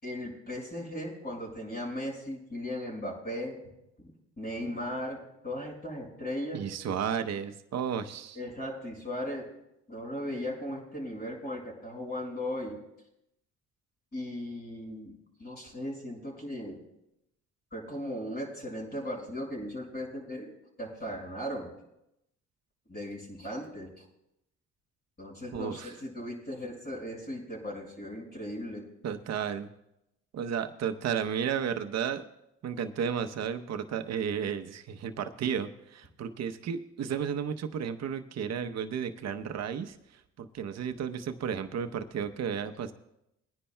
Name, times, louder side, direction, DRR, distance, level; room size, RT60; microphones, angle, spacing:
voice 1, 0.0-3.6 4.0-6.7 8.4-9.5 9.9-12.8 14.1-15.1 15.4-16.8 17.7-20.5 20.8-21.7 22.9-24.1 25.2-28.9, left 1 dB, 35° left, -1 dB, 5.2 m, -37 dB
voice 2, 6.5-8.4 25.5-25.9 29.0-29.7 30.3-32.2 32.6-42.9, right 7 dB, 60° right, 8 dB, 0.8 m, -33 dB
22.5 x 10.0 x 2.2 m, 0.84 s
cardioid pair, 90°, 30 cm